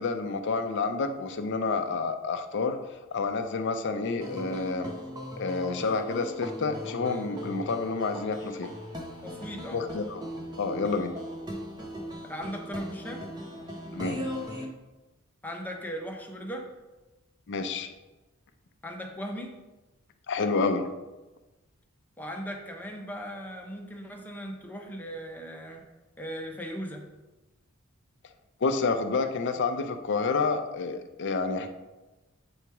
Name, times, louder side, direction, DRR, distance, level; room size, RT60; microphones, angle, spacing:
voice 1, 0.0-2.8 3.1-4.9 5.4-8.7 9.7-10.2 10.6-11.1 13.9-14.2 17.5-17.9 20.3-20.8 28.6-31.7, left 4 dB, 55° left, 7 dB, 0.5 m, -29 dB
sound 1, 4.2-14.7, equal, 20° right, 0.8 m, -39 dB
voice 2, 9.2-9.8 12.3-13.3 15.4-16.7 18.8-19.5 22.2-25.8 26.2-27.0, equal, 10° left, 1 dB, 0.8 m, -38 dB
8.0 x 3.0 x 4.6 m, 1.1 s
head